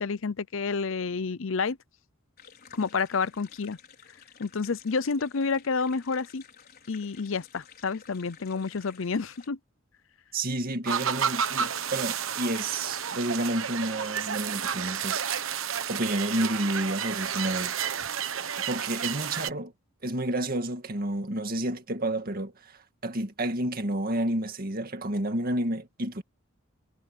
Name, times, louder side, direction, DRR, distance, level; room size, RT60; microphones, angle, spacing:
voice 1, 0.0-1.8 2.7-3.8 4.4-6.4 6.9-9.6, left 4 dB, 65° left, 0.6 m, -29 dB
sound 1, 2.4-9.5, left 7 dB, 50° left, 5.0 m, -53 dB
voice 2, 10.3-15.2 15.9-17.7 18.7-19.7 20.0-26.2, right 1 dB, 45° right, 2.0 m, -30 dB
sound 2, 10.9-19.5, right 8 dB, 70° right, 1.1 m, -31 dB
head